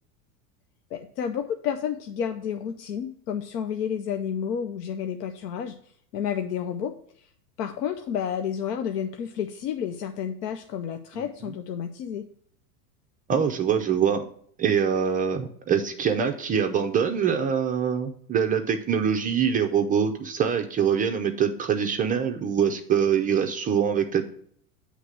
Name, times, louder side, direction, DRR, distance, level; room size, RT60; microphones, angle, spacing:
voice 1, 0.9-5.7 6.1-7.3 7.6-12.2, left 8 dB, 90° left, 6 dB, 0.7 m, -30 dB
voice 2, 13.3-14.2 14.6-24.2, right 7 dB, 20° right, 5 dB, 0.3 m, -24 dB
7.8 x 3.3 x 6.3 m, 0.62 s
supercardioid pair, 115°, 46 cm